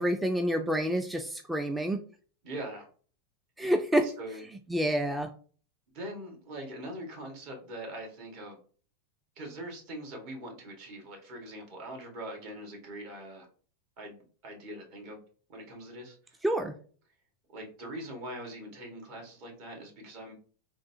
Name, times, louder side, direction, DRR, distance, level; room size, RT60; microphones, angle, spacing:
voice 1, 0.0-2.0 3.6-4.1 4.7-5.3 16.4-16.7, equal, 10° right, 5 dB, 0.3 m, -28 dB
voice 2, 2.4-2.9 3.6-3.7 4.0-4.4 5.9-8.6 9.4-13.4 14.0-15.2 15.5-16.4 17.5-20.3, right 1 dB, 60° right, 1 dB, 1.6 m, -42 dB
3.7 x 2.4 x 2.7 m, 0.42 s
hypercardioid pair, 115°, 0 cm